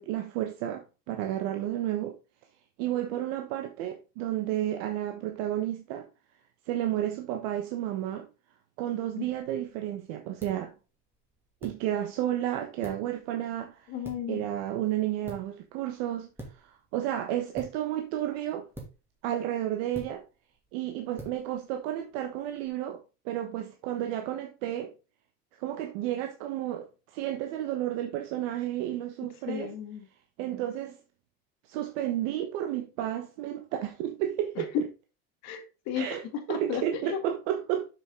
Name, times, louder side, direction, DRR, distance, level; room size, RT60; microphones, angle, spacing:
voice 1, 0.0-2.1 2.8-6.1 6.7-8.3 8.8-10.7 11.6-13.9 14.3-16.3 16.5-18.7 19.2-20.2 20.7-23.0 23.2-24.9 25.6-29.7 30.4-31.0 31.7-34.7 35.9-36.2 36.5-37.9, right 12 dB, 85° right, 1.3 m, -32 dB
sound 1, 9.2-22.7, right 1 dB, 5° right, 2.4 m, -50 dB
voice 2, 13.9-14.5 29.5-30.1 34.6-34.8 35.4-36.1 36.3-37.2, left 8 dB, 60° left, 2.2 m, -33 dB
7.2 x 6.7 x 3.8 m
cardioid pair, 160°, 30 cm